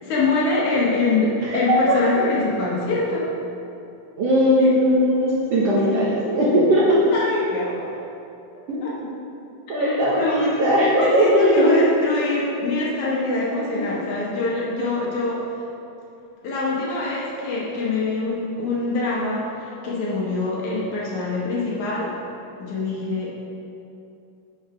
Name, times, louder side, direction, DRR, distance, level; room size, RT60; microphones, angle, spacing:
voice 1, 0.0-3.3 4.4-4.8 7.1-7.9 8.8-8.9 9.8-10.5 11.0-15.4 16.4-22.1 22.6-23.3, left 3 dB, 65° left, -5 dB, 2.3 m, -24 dB
voice 2, 1.4-2.0 4.2-7.0 8.7-9.1 9.7-11.8 13.7-13.8, equal, 60° right, -8 dB, 1.7 m, -19 dB
6.7 x 6.4 x 4.8 m, 2.7 s
omnidirectional pair, 4.0 m